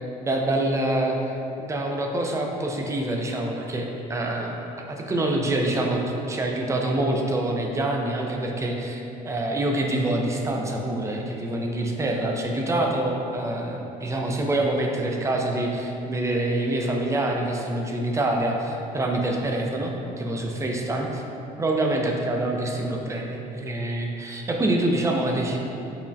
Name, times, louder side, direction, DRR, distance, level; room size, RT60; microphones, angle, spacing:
voice 1, 0.2-1.3 1.6-4.5 4.9-6.0 6.3-21.2 21.6-25.6, right 1 dB, 15° right, 1 dB, 0.4 m, -26 dB
5.4 x 2.0 x 2.6 m, 3.0 s
cardioid pair, 110°, 17 cm